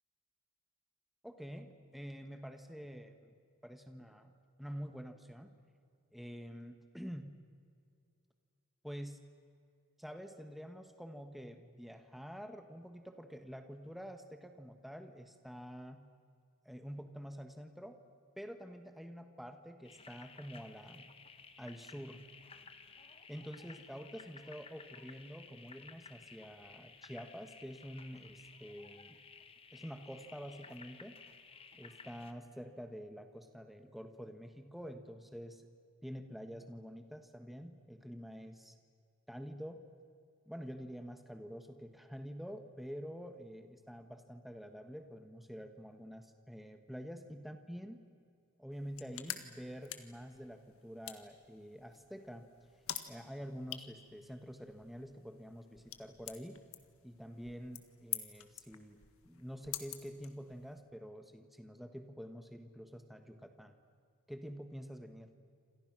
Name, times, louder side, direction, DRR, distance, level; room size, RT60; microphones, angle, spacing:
voice 1, 1.2-3.3 3.6-5.5 6.1-7.3 8.8-9.2 10.0-16.0 16.6-18.0 18.4-21.1 21.6-22.2 23.3-29.2 29.7-31.2 31.7-35.7 36.0-38.8 39.3-39.8 40.4-48.0 48.6-52.5 53.1-56.6 57.0-63.8 64.3-65.3, equal, ahead, 6 dB, 1.3 m, -47 dB
sound 1, 19.8-32.3, left 5 dB, 25° left, 1.2 m, -56 dB
sound 2, 48.7-60.8, left 12 dB, 80° left, 1.7 m, -48 dB
29.0 x 26.5 x 6.1 m, 2.3 s
head